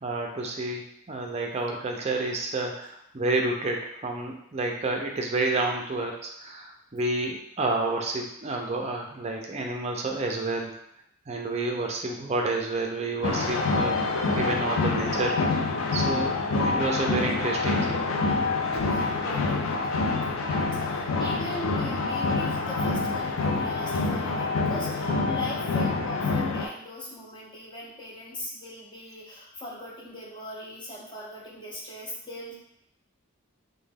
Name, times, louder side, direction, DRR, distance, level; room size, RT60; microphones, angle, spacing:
voice 1, 0.0-10.7 11.3-14.0 14.3-18.0, right 2 dB, 30° right, 1 dB, 0.4 m, -30 dB
sound 1, 13.2-26.7, left 3 dB, 70° left, 0.4 m, -26 dB
voice 2, 18.7-32.5, left 1 dB, 20° left, -4 dB, 0.6 m, -40 dB
3.0 x 2.1 x 3.4 m, 0.77 s
head